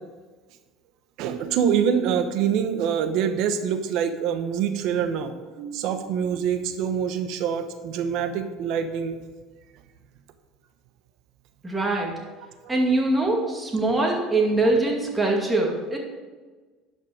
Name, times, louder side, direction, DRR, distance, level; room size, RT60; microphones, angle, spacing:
voice 1, 1.2-9.2 12.6-12.7, right 8 dB, 65° right, 9 dB, 1.0 m, -25 dB
voice 2, 11.6-12.2 12.7-16.0, right 2 dB, 15° right, 0 dB, 2.3 m, -23 dB
11.0 x 5.5 x 5.0 m, 1.3 s
supercardioid pair, 100°, 0 cm